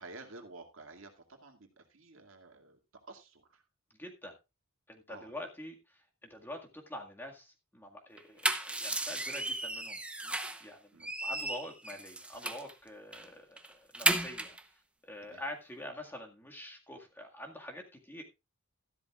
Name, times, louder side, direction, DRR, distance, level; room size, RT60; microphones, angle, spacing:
voice 1, 0.0-3.6 5.1-5.3 10.9-11.1 15.2-15.4, right 3 dB, 65° right, 4 dB, 2.2 m, -51 dB
voice 2, 4.0-4.4 4.9-14.6 15.0-18.2, left 1 dB, 10° left, 1 dB, 1.9 m, -46 dB
sound 1, 8.2-10.7 11.0-12.7 13.1-13.3 13.6-14.6, right 2 dB, 5° right, 0.9 m, -34 dB
13.5 x 12.0 x 2.4 m, 0.26 s
head